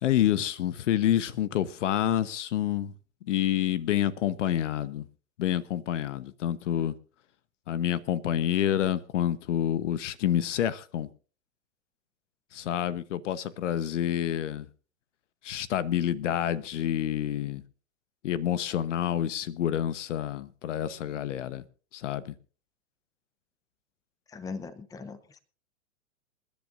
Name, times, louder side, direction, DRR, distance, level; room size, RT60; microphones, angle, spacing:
voice 1, 0.0-2.9 3.2-5.0 5.4-7.0 7.7-11.1 12.5-14.7 15.4-17.6 18.2-21.6 21.9-22.3, left 11 dB, 65° left, 1.1 m, -28 dB
voice 2, 24.3-25.4, left 4 dB, 10° left, 0.8 m, -40 dB
27.5 x 10.5 x 2.6 m
hypercardioid pair, 115°, 39 cm